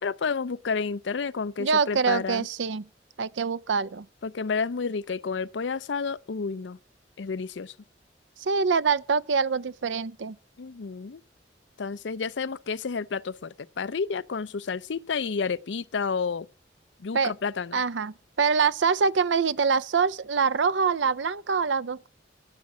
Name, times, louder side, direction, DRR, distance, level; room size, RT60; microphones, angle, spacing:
voice 1, 0.0-2.5 4.2-6.8 7.2-7.7 10.6-11.2 11.8-16.5 17.0-17.8, left 5 dB, 80° left, 0.5 m, -30 dB
voice 2, 1.6-2.9 3.2-4.1 8.4-10.4 17.1-17.3 17.7-22.1, right 5 dB, 85° right, 0.6 m, -25 dB
13.5 x 8.4 x 6.1 m
head